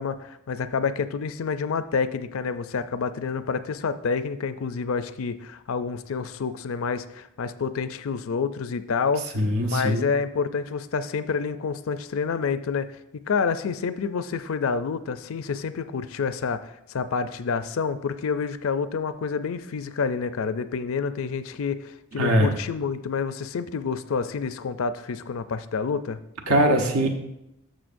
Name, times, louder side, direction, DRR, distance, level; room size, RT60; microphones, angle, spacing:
voice 1, 0.0-9.3 9.6-12.9 13.1-26.2, left 5 dB, 65° left, 12 dB, 0.4 m, -28 dB
voice 2, 9.3-10.0 22.2-22.5 26.5-27.1, equal, 80° right, 3 dB, 1.2 m, -21 dB
12.5 x 6.4 x 2.6 m, 0.84 s
head